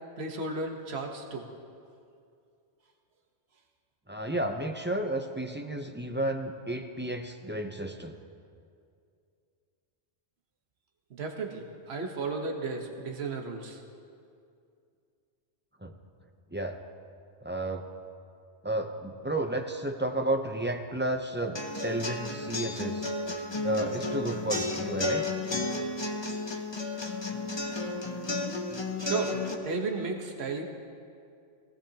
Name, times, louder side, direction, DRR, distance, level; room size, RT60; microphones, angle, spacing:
voice 1, 0.2-1.4 11.1-13.8 29.0-29.3 29.6-30.6, right 4 dB, 65° right, 3 dB, 1.4 m, -34 dB
voice 2, 4.1-8.2 15.8-15.9 16.5-16.8 17.4-17.8 18.6-23.1 23.6-25.3, right 1 dB, 10° right, 5 dB, 0.6 m, -32 dB
sound 1, 21.6-29.5, left 2 dB, 25° left, 0.9 m, -33 dB
19.0 x 16.5 x 2.9 m, 2.4 s
omnidirectional pair, 1.2 m